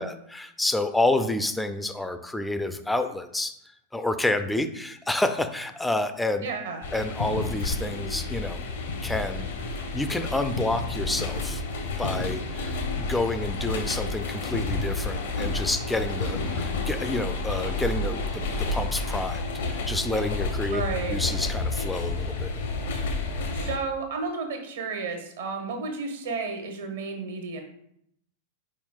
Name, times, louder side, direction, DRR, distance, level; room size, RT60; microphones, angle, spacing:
voice 1, 0.0-3.6 3.9-6.5 6.9-8.6 9.0-11.6 12.0-19.4 19.7-20.8 21.1-22.5, left 2 dB, 5° left, 8 dB, 0.3 m, -29 dB
voice 2, 6.4-6.8 20.7-21.2 23.5-27.6, right 4 dB, 60° right, 5 dB, 0.8 m, -32 dB
sound 1, 6.8-23.8, left 3 dB, 65° left, 0.7 m, -30 dB
5.3 x 4.4 x 2.2 m, 0.72 s
figure-of-eight pair, 90°, 0 cm